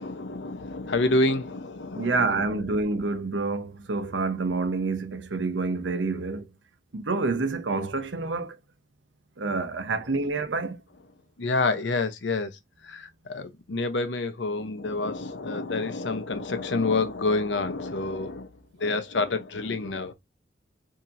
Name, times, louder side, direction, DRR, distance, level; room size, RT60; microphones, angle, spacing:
voice 1, 0.0-2.8 11.4-12.5 12.8-18.5 18.8-20.1, left 3 dB, 90° left, 0.7 m, -28 dB
voice 2, 2.0-6.4 6.9-8.6 9.4-10.8, right 3 dB, 90° right, 0.8 m, -28 dB
7.1 x 2.9 x 2.5 m
head